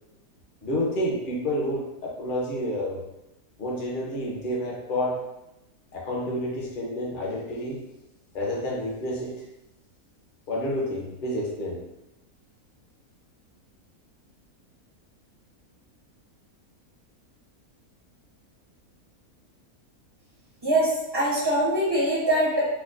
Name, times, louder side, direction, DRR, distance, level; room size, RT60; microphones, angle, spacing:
voice 1, 0.6-3.0 3.6-5.2 5.9-7.8 8.3-9.4 10.5-11.8, equal, 45° left, -3 dB, 0.7 m, -29 dB
voice 2, 20.6-22.6, right 1 dB, 30° right, -8 dB, 0.5 m, -23 dB
4.5 x 2.1 x 2.4 m, 0.93 s
omnidirectional pair, 1.6 m